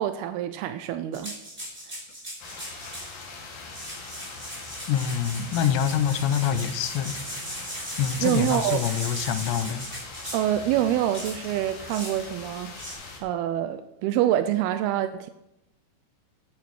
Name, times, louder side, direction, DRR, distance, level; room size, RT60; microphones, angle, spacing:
voice 1, 0.0-1.3 8.2-8.8 10.3-12.8 13.2-15.3, right 12 dB, 85° right, 2.3 m, -26 dB
sound 1, 1.1-3.1 3.6-10.6 11.1-11.4 11.9-12.2 12.7-12.9, equal, 10° right, 4.3 m, -37 dB
sound 2, 2.4-13.2, left 4 dB, 60° left, 3.8 m, -42 dB
voice 2, 4.9-7.2 8.0-9.9, left 9 dB, 85° left, 3.0 m, -25 dB
13.0 x 9.6 x 4.7 m
omnidirectional pair, 5.1 m